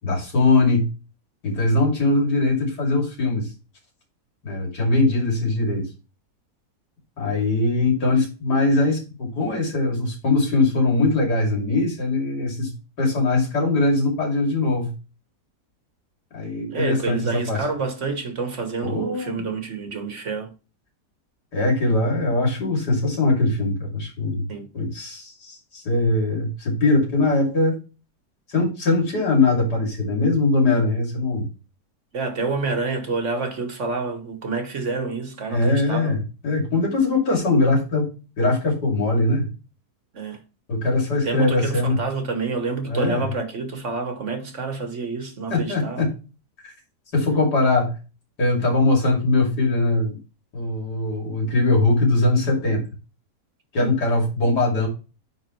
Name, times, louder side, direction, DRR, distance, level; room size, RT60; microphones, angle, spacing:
voice 1, 0.0-0.8 1.4-3.5 4.4-5.9 7.2-12.7 13.0-14.9 16.3-17.6 18.8-19.5 21.5-24.4 24.7-27.7 28.5-31.5 35.5-38.1 38.4-39.5 40.7-42.0 42.8-43.3 45.5-46.1 46.6-46.7 47.1-47.9 48.4-50.2 50.5-52.8 53.7-54.9, left 2 dB, 80° left, 3.2 m, -21 dB
voice 2, 16.7-20.5 24.5-24.7 32.1-36.1 40.1-40.4 41.2-46.0 53.8-54.0, right 4 dB, 50° right, 1.3 m, -28 dB
9.4 x 3.7 x 3.1 m
omnidirectional pair, 1.7 m